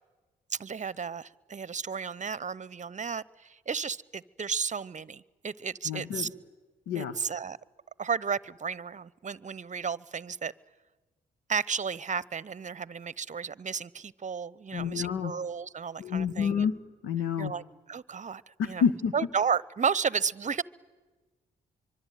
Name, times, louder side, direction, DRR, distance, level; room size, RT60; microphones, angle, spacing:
voice 1, 0.5-6.3 7.0-7.6 8.0-10.5 11.5-16.7 17.4-18.8 19.1-20.6, right 6 dB, 35° right, 23 dB, 0.8 m, -33 dB
voice 2, 5.8-6.3 6.9-7.1 14.7-15.3 16.0-16.8 17.0-17.5 18.6-19.1, left 7 dB, 80° left, 12 dB, 1.3 m, -28 dB
24.5 x 24.0 x 9.3 m, 1.3 s
hypercardioid pair, 40°, 21 cm